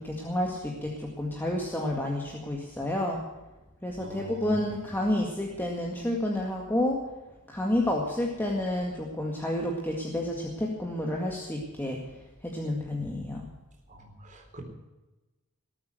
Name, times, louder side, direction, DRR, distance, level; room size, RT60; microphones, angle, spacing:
voice 1, 0.0-3.2 3.8-7.0 7.5-12.0 12.4-13.5, left 1 dB, 10° left, -1 dB, 2.0 m, -30 dB
voice 2, 4.0-4.7 13.9-14.6, right 1 dB, 35° right, 1 dB, 4.1 m, -45 dB
19.5 x 8.8 x 8.0 m, 1.1 s
head